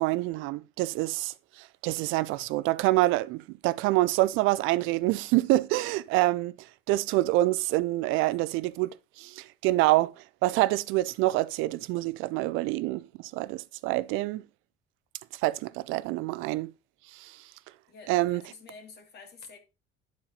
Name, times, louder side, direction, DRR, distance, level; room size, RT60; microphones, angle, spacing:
voice 1, 0.0-8.9 9.2-10.1 10.4-14.4 15.4-16.7 17.1-17.3 18.1-18.4, right 18 dB, 75° right, 0.5 m, -26 dB
voice 2, 8.1-8.7 17.9-19.6, left 4 dB, 55° left, 2.4 m, -50 dB
10.5 x 4.2 x 3.9 m
cardioid pair, 100°, 20 cm